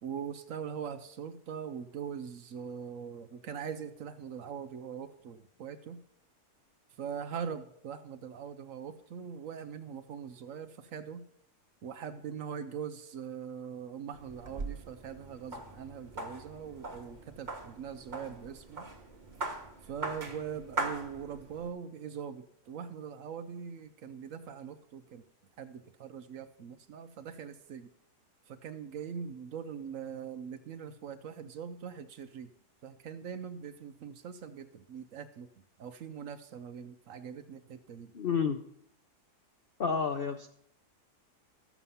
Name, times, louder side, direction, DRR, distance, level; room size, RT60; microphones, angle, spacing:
voice 1, 0.0-6.0 7.0-11.2 11.8-18.9 19.8-25.2 25.6-27.9 28.5-32.5 32.8-35.5 35.8-38.1, right 7 dB, 60° right, 10 dB, 1.0 m, -42 dB
sound 1, 14.1-21.7, right 3 dB, 30° right, 1.3 m, -41 dB
voice 2, 38.1-38.6 39.8-40.5, left 6 dB, 60° left, 6 dB, 0.6 m, -30 dB
13.0 x 7.2 x 5.6 m, 0.68 s
omnidirectional pair, 1.7 m